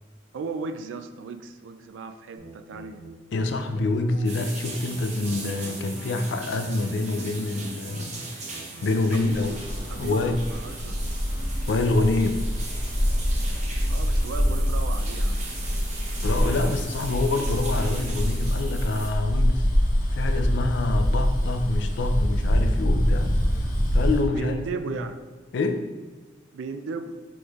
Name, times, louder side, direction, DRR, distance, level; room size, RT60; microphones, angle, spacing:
voice 1, 0.3-3.0 9.1-9.6 9.9-11.1 13.9-15.4 24.3-25.2 26.5-27.2, right 4 dB, 80° right, 9 dB, 0.3 m, -36 dB
sound 1, 2.4-10.0, right 2 dB, 60° right, 1.0 m, -46 dB
voice 2, 3.3-8.3 8.8-9.5 10.0-10.4 11.7-12.4 16.2-19.7 20.1-23.3 23.9-25.0 25.5-25.9, left 2 dB, 65° left, 6 dB, 0.4 m, -26 dB
sound 2, 4.2-19.1, right 3 dB, 35° right, 0.8 m, -39 dB
Bus, 9.1-24.2, equal, 50° left, 0.8 m, -25 dB
6.2 x 3.2 x 2.3 m, 1.3 s
head